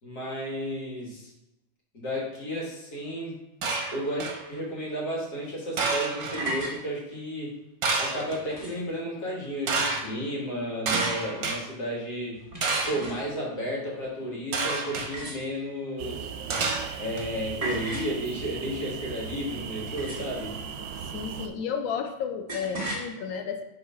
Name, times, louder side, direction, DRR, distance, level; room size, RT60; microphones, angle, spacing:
voice 1, 0.0-1.3 1.9-3.4 3.9-7.5 8.0-12.4 12.9-16.3 17.0-20.5, equal, 55° left, -4 dB, 2.2 m, -33 dB
sound 1, 3.6-4.4 5.8-6.4 7.8-8.4 9.7-10.0 10.9-11.6 12.6-13.1 14.5-15.1 16.5-17.2, right 4 dB, 55° right, 1.2 m, -28 dB
sound 2, 6.3-6.8 8.3-8.9 10.9-11.3 12.4-13.4 14.9-15.8 17.6-18.2 19.9-20.4 22.5-23.1, right 1 dB, 20° right, 1.9 m, -35 dB
sound 3, 16.0-21.5, right 7 dB, 75° right, 1.2 m, -38 dB
voice 2, 21.1-23.6, left 6 dB, 90° left, 5 dB, 1.5 m, -32 dB
4.8 x 3.6 x 5.6 m, 0.89 s
omnidirectional pair, 2.0 m